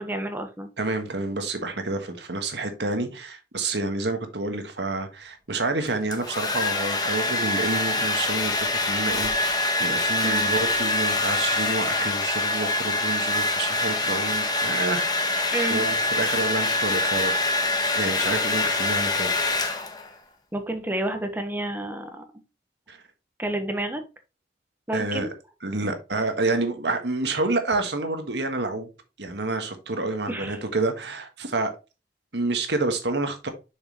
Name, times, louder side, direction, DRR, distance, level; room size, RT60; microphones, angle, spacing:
voice 1, 0.0-0.7 10.2-10.5 15.5-15.8 20.5-22.2 23.4-24.0 24.9-25.3 30.3-30.6, right 1 dB, 10° right, 1.2 m, -29 dB
voice 2, 0.8-17.4 17.9-19.5 22.9-23.0 24.9-25.3 25.6-28.9 29.2-31.7 32.3-33.5, right 2 dB, 75° right, 1.6 m, -29 dB
Domestic sounds home sounds, 5.9-20.1, left 2 dB, 25° left, 1.2 m, -25 dB
6.9 x 6.5 x 3.1 m
head